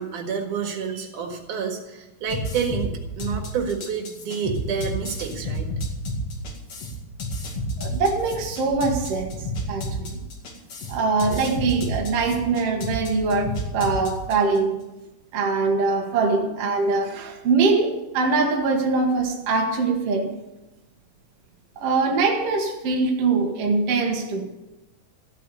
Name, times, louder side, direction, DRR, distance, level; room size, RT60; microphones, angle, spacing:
voice 1, 0.0-2.9 3.2-5.7, right 6 dB, 75° right, 3.2 m, -29 dB
sound 1, 2.3-14.6, equal, 50° left, 3.1 m, -30 dB
voice 2, 7.8-9.3 9.7-10.2 10.9-14.8 15.3-20.3 21.8-24.4, right 4 dB, 55° right, 2.4 m, -23 dB
14.5 x 8.3 x 8.8 m
omnidirectional pair, 3.7 m